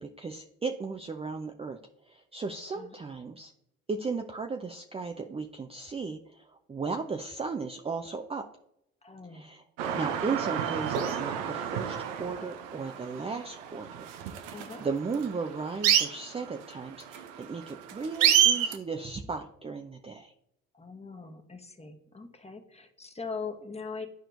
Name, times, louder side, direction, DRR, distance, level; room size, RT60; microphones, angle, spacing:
voice 1, 0.0-1.8 2.1-3.5 3.9-8.5 9.3-9.6 9.9-14.1 14.5-20.3, right 4 dB, 15° right, 5 dB, 0.5 m, -36 dB
voice 2, 9.0-9.5 14.5-14.9 20.7-24.1, left 4 dB, 15° left, 6 dB, 1.1 m, -41 dB
sound 1, 9.8-18.8, right 9 dB, 90° right, 0.7 m, -29 dB
11.5 x 4.3 x 2.6 m, 0.78 s
hypercardioid pair, 65°, 36 cm